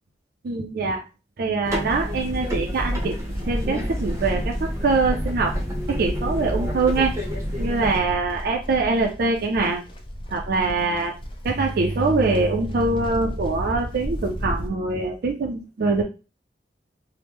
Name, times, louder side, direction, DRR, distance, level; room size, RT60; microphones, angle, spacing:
voice 1, 0.4-1.0 1.4-5.6 5.9-7.2 7.6-9.8 10.3-11.1 11.4-16.0, right 3 dB, 55° right, 2 dB, 0.4 m, -23 dB
sound 1, 1.6-8.0, equal, 15° right, 0.7 m, -29 dB
Livestock farm animals working animals, 2.2-14.7, equal, 30° left, 0.5 m, -34 dB
3.0 x 2.1 x 3.3 m, 0.31 s
head